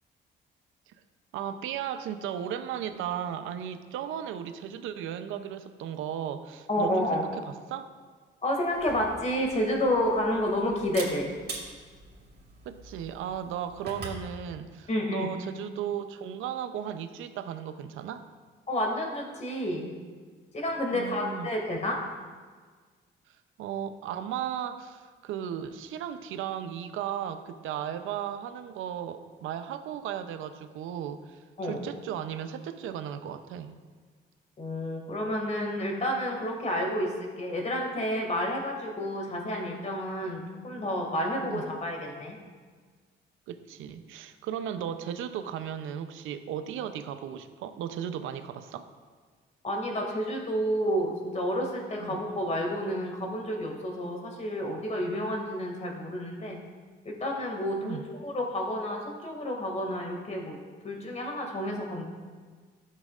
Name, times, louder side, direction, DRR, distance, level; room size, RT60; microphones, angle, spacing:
voice 1, 1.3-7.9 12.6-18.2 20.9-21.5 23.6-33.8 40.2-40.3 41.5-41.6 43.5-48.9 52.0-52.2 57.8-58.0, right 9 dB, 90° right, 10 dB, 0.6 m, -36 dB
voice 2, 6.7-7.2 8.4-11.3 14.9-15.3 18.7-19.9 20.5-22.0 31.6-31.8 34.6-42.4 49.6-56.6 57.0-60.6 60.8-62.0, equal, 35° left, 1 dB, 2.1 m, -30 dB
Camera, 8.7-14.3, right 2 dB, 55° right, 2.6 m, -44 dB
13.0 x 7.5 x 2.4 m, 1.5 s
cardioid pair, 90°, 20 cm